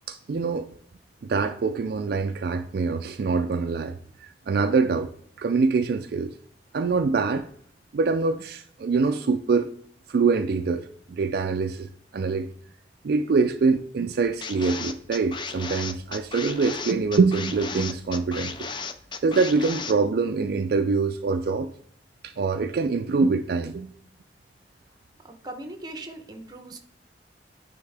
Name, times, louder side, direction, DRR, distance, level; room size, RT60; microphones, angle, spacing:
voice 1, 0.1-0.7 1.3-3.9 4.2-5.1 5.4-6.3 6.7-7.5 7.9-9.7 10.1-12.5 13.0-18.7 19.2-21.7 22.2-23.9, right 4 dB, 60° right, 7 dB, 0.3 m, -24 dB
sound 1, 14.4-19.9, left 5 dB, 25° left, 0.4 m, -35 dB
voice 2, 25.2-26.8, right 2 dB, 25° right, 6 dB, 0.8 m, -39 dB
9.3 x 3.6 x 3.3 m, 0.64 s
head